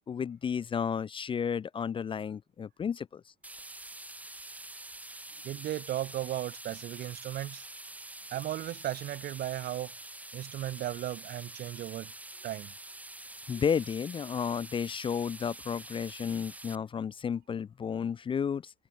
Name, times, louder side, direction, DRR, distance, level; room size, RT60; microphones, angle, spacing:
voice 1, 0.1-3.2 13.5-18.7, left 7 dB, 30° left, 0.5 m, -32 dB
sound 1, 3.4-16.8, right 2 dB, 10° right, 2.0 m, -46 dB
voice 2, 5.4-7.6 8.3-9.9 10.3-12.1 12.4-12.7, right 13 dB, 65° right, 2.0 m, -36 dB
cardioid pair, 110°, 17 cm